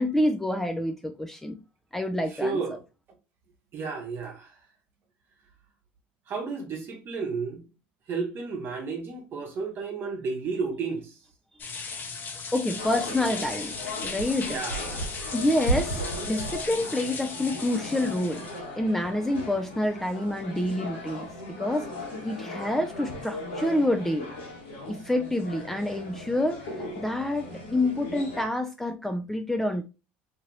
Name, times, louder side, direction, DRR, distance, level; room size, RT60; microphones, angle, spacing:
voice 1, 0.0-1.6 1.9-2.6 12.1-13.8 14.0-14.6 15.3-18.4 18.8-21.3 21.6-21.9 22.2-24.3 24.9-29.8, left 1 dB, 5° left, 0.4 m, -27 dB
voice 2, 2.4-2.8 3.7-4.5 6.3-7.6 8.1-11.1 14.5-15.1, right 4 dB, 45° right, 0.9 m, -32 dB
sound 1, 11.6-18.6, left 4 dB, 40° left, 0.7 m, -37 dB
sound 2, 12.8-28.4, equal, 85° left, 1.1 m, -37 dB
2.8 x 2.5 x 3.0 m
hypercardioid pair, 75°, 5 cm